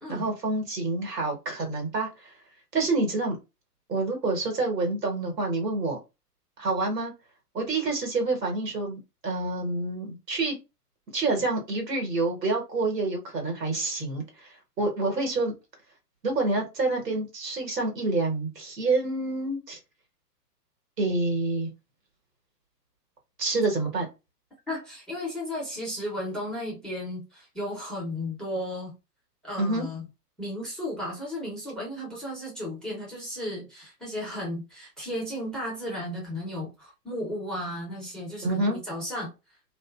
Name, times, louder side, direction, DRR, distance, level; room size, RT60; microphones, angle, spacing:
voice 1, 0.1-2.3 2.7-3.4 3.9-6.0 6.6-7.1 7.5-10.6 11.1-15.5 16.2-19.8 21.0-21.7 23.4-24.1 29.6-29.9 38.4-38.8, right 2 dB, 80° right, 1.3 m, -27 dB
voice 2, 24.7-28.9 29.4-30.0 30.4-39.3, left 1 dB, ahead, 0.8 m, -34 dB
2.6 x 2.5 x 2.3 m
figure-of-eight pair, 110°, 48 cm